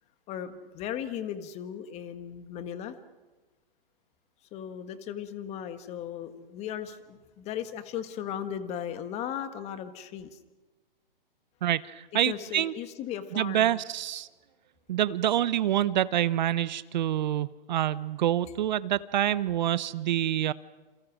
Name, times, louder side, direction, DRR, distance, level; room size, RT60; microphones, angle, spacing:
voice 1, 0.3-3.0 4.5-10.4 12.2-13.8, left 9 dB, 20° left, 11 dB, 1.4 m, -37 dB
voice 2, 11.6-12.7 13.4-14.3 14.9-20.5, right 12 dB, 50° right, 18 dB, 0.7 m, -27 dB
28.0 x 27.5 x 6.1 m, 1.3 s
hypercardioid pair, 140°, 29 cm